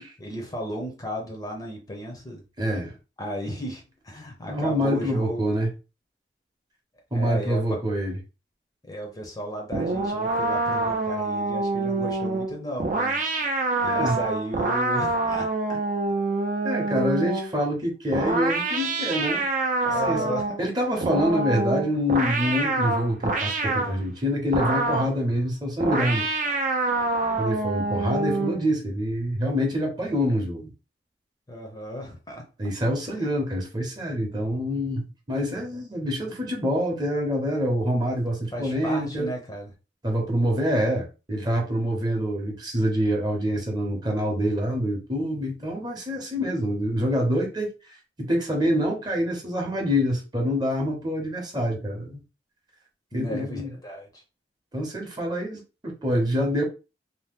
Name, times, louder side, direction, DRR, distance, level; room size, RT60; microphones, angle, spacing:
voice 1, 0.2-2.4 3.2-5.5 7.1-7.8 8.8-13.3 13.8-15.8 19.9-20.6 31.5-32.5 33.1-33.3 38.5-39.7 53.1-54.2, equal, 20° left, 0.6 m, -34 dB
voice 2, 2.6-2.9 4.5-5.7 7.1-8.2 13.8-14.2 16.6-19.5 19.8-20.2 20.6-26.2 27.4-30.7 32.6-39.3 40.0-47.9 48.2-52.2 53.1-53.7 54.7-56.6, equal, 25° right, 0.8 m, -26 dB
sound 1, 9.7-17.5 18.1-20.6 21.0-24.0 24.5-25.2 25.8-28.6, right 3 dB, 45° right, 0.5 m, -26 dB
2.8 x 2.1 x 3.4 m
head